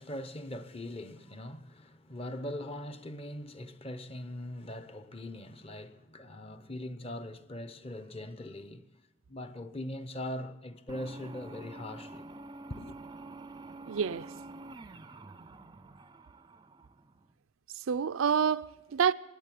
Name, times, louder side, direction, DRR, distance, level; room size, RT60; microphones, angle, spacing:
voice 1, 0.0-8.9 9.3-12.3 12.7-13.0, left 1 dB, 30° left, 0.7 m, -41 dB
sound 1, 10.9-17.3, right 2 dB, 20° right, 0.4 m, -47 dB
voice 2, 13.9-14.3 17.7-19.1, right 7 dB, 75° right, 0.4 m, -28 dB
20.0 x 8.4 x 8.3 m
head